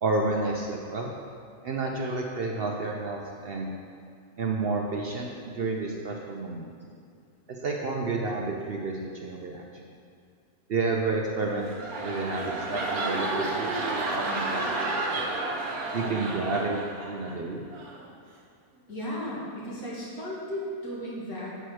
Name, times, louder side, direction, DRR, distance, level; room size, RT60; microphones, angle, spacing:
voice 1, 0.0-1.1 1.6-3.7 4.4-6.7 7.5-9.6 10.7-11.7 12.0-15.2 15.9-16.8 17.0-17.6, right 3 dB, 55° right, 0 dB, 0.7 m, -30 dB
sound 1, 11.4-17.4 17.7-18.0, right 2 dB, 80° right, 1.5 m, -31 dB
voice 2, 18.9-21.6, equal, 80° left, -6 dB, 2.4 m, -35 dB
8.0 x 4.4 x 6.3 m, 2.4 s
omnidirectional pair, 1.5 m